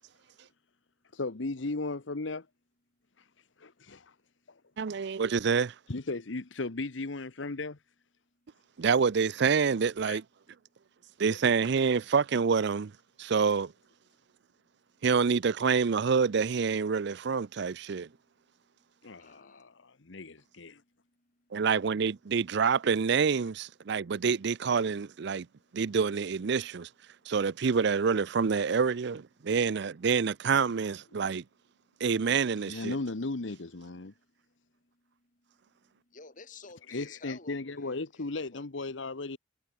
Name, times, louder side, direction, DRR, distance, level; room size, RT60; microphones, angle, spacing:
voice 1, 0.0-1.2 2.9-5.2 8.2-8.9 10.6-11.2 13.1-13.3 14.1-15.1 17.0-21.7 22.3-22.5 23.8-24.3 25.0-26.0 26.6-27.4 29.4-30.0 31.1-32.4 33.8-38.9, left 4 dB, 45° left, 7.5 m, -60 dB
voice 2, 1.1-2.5 3.2-3.3 3.6-4.1 5.9-7.8 10.0-10.2 19.0-20.8 32.7-34.1 36.9-39.4, left 3 dB, 75° left, 1.1 m, -36 dB
voice 3, 4.8-5.7 8.8-10.2 11.2-12.9 13.2-13.7 15.0-18.1 21.5-25.5 25.7-26.9 27.3-31.4 32.0-33.0, right 5 dB, 60° right, 0.5 m, -27 dB
head